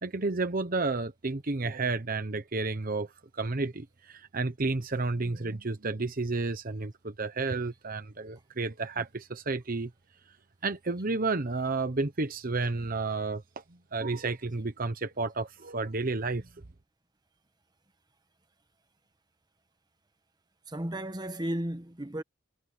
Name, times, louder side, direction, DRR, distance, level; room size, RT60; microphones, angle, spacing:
voice 1, 0.0-9.9 10.6-13.6 13.9-16.5, right 3 dB, 45° right, 1.0 m, -31 dB
voice 2, 20.7-22.2, right 1 dB, 20° right, 1.3 m, -34 dB
head